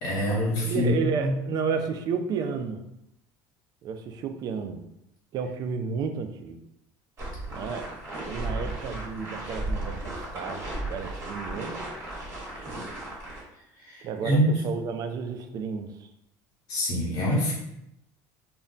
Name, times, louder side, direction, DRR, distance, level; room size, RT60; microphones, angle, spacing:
voice 1, 0.0-1.3 13.8-14.5 16.7-17.5, equal, 60° left, -5 dB, 0.9 m, -25 dB
voice 2, 0.6-2.8 3.8-4.8 5.3-6.6 7.5-11.8 14.0-16.1, right 5 dB, 45° right, 7 dB, 0.3 m, -32 dB
sound 1, 7.2-13.4, right 1 dB, 30° right, 1.2 m, -35 dB
2.2 x 2.1 x 3.7 m, 0.81 s
supercardioid pair, 125°, 9 cm